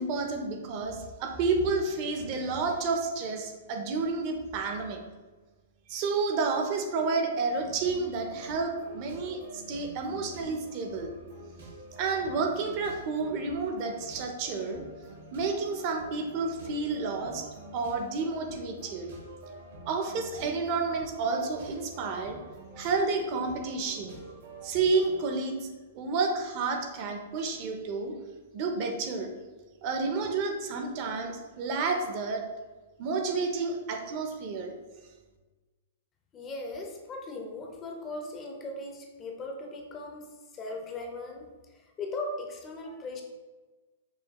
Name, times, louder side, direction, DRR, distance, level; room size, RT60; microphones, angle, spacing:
voice 1, 0.0-5.0 5.9-11.1 12.0-14.8 15.3-17.4 17.7-19.1 19.9-22.4 22.8-24.2 24.6-25.7 25.9-28.1 28.5-29.3 29.8-32.4 33.0-34.7, right 4 dB, 35° right, 4 dB, 0.5 m, -30 dB
sound 1, 7.5-25.3, right 1 dB, 80° right, 1.2 m, -47 dB
voice 2, 36.3-43.2, left 2 dB, 20° left, 2 dB, 0.4 m, -38 dB
5.5 x 2.2 x 2.9 m, 1.3 s
hypercardioid pair, 155°, 0 cm